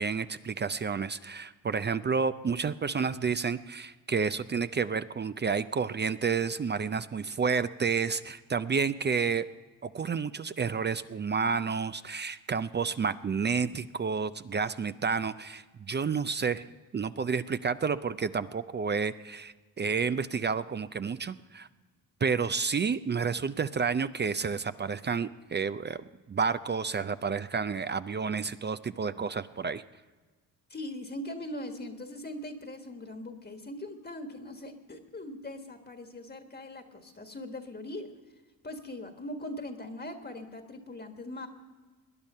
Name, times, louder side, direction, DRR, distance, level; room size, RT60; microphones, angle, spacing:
voice 1, 0.0-9.4 9.8-16.6 16.9-21.7 22.2-29.8, right 5 dB, 30° right, 13 dB, 0.4 m, -30 dB
voice 2, 30.7-38.1 38.6-41.5, left 1 dB, 25° left, 5 dB, 1.5 m, -41 dB
19.0 x 10.5 x 5.5 m, 1.3 s
cardioid pair, 90°, 37 cm